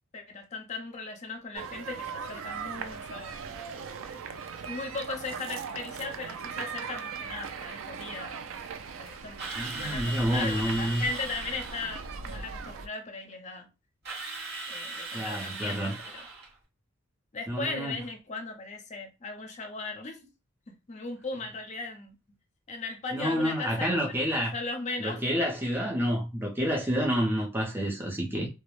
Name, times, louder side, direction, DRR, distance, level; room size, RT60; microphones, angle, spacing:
voice 1, 0.1-3.3 4.1-4.2 4.6-8.4 9.0-9.5 9.7-13.7 14.7-16.3 17.3-20.3 20.9-22.1 22.7-24.2 24.5-25.2, left 3 dB, 35° left, 0.5 m, -37 dB
sound 1, 1.5-12.9, right 5 dB, 70° right, 0.4 m, -39 dB
Drill, 9.4-12.1 14.0-16.5, right 2 dB, 50° right, 1.1 m, -39 dB
voice 2, 9.5-11.0 15.1-16.0 17.5-18.0 23.1-24.5 25.0-28.5, equal, 10° right, 0.5 m, -29 dB
2.2 x 2.0 x 3.0 m
head